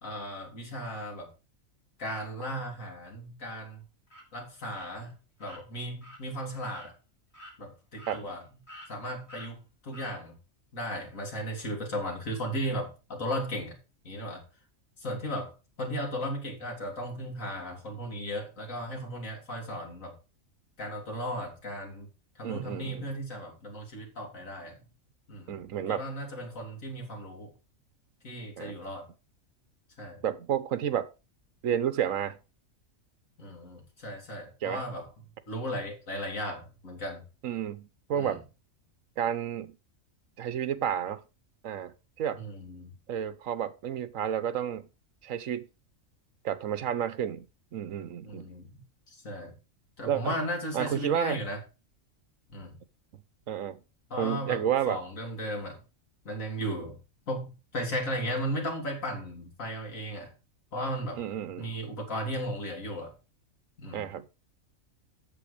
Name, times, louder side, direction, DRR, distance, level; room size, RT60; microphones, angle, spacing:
voice 1, 0.0-1.3 2.0-3.8 4.3-6.9 7.6-8.4 8.9-10.3 10.7-13.8 14.0-14.4 15.0-20.2 20.8-22.1 22.4-24.8 25.3-27.5 28.2-29.1 30.0-30.2 33.4-35.1 35.5-37.2 38.1-38.4 42.3-42.9 48.2-48.8 49.1-49.6 50.0-51.6 52.5-52.8 54.1-55.8 56.2-57.0 57.3-60.3 60.7-61.2 61.6-63.1 63.8-64.1, equal, 70° left, 3.2 m, -36 dB
sound 1, 4.1-4.2 4.7-4.9 5.4-5.6 6.0-6.2 6.7-6.9 7.3-7.5 8.0-8.4 8.7-8.9 9.3-9.5 9.9-10.1, equal, 50° left, 4.8 m, -47 dB
voice 2, 22.4-23.1 25.5-26.0 28.6-28.7 30.2-31.1 31.6-32.4 34.6-34.8 37.4-38.4 39.2-39.7 40.4-41.2 41.6-42.4 43.1-44.9 45.2-45.7 46.4-47.5 47.7-48.5 50.1-50.3 50.7-51.4 53.5-53.8 54.2-55.0 61.2-61.7 63.9-64.3, right 9 dB, 70° right, 1.2 m, -31 dB
8.1 x 7.2 x 5.0 m
omnidirectional pair, 1.4 m